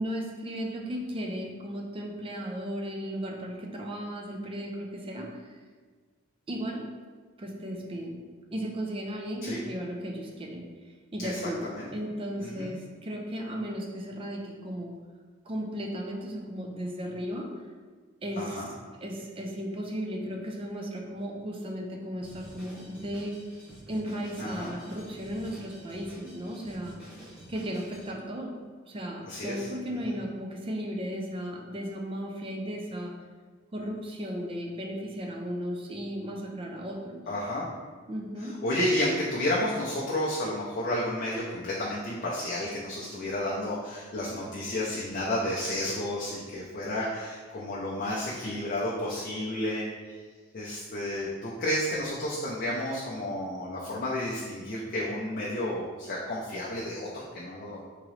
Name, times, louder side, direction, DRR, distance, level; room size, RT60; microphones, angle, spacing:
voice 1, 0.0-5.5 6.5-6.8 7.4-8.2 8.5-10.7 11.1-14.9 15.5-17.5 18.2-18.6 19.0-23.4 23.9-27.0 27.5-28.6 28.9-33.1 33.7-37.2 38.1-38.6, equal, 25° right, 1 dB, 0.4 m, -35 dB
voice 2, 12.4-12.7 18.4-18.7 24.4-24.7 29.3-29.7 37.3-37.7 38.4-49.8 50.2-50.3 50.5-57.8, left 1 dB, 45° left, -6 dB, 0.5 m, -31 dB
Drum kit, 22.2-28.1, equal, 5° right, 1.2 m, -49 dB
3.7 x 3.0 x 3.1 m, 1.5 s
head